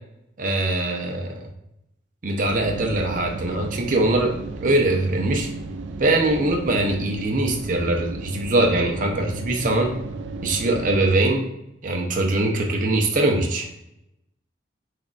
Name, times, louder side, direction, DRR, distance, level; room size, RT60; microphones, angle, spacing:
voice 1, 0.4-1.5 2.2-5.5 6.0-9.9 10.4-11.5 11.8-13.7, right 2 dB, 50° right, 1 dB, 0.7 m, -22 dB
sound 1, 2.4-11.2, right 3 dB, 90° right, 0.4 m, -34 dB
5.9 x 2.6 x 2.3 m, 0.85 s
head